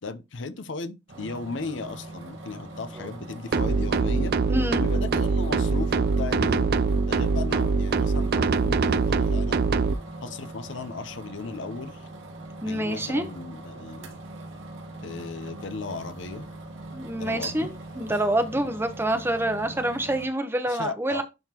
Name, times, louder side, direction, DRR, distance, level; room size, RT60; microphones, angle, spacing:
voice 1, 0.0-4.3 4.8-9.6 10.2-12.1 12.7-14.2 15.0-16.4 17.1-17.7 18.1-18.2 20.7-21.2, left 4 dB, 70° left, 0.7 m, -36 dB
sound 1, 1.1-20.3, right 2 dB, 80° right, 2.0 m, -42 dB
sound 2, 3.5-9.9, right 4 dB, 50° right, 0.4 m, -23 dB
voice 2, 4.5-4.8 12.6-13.3 16.9-21.2, right 1 dB, 10° right, 0.8 m, -27 dB
10.5 x 3.7 x 2.9 m
head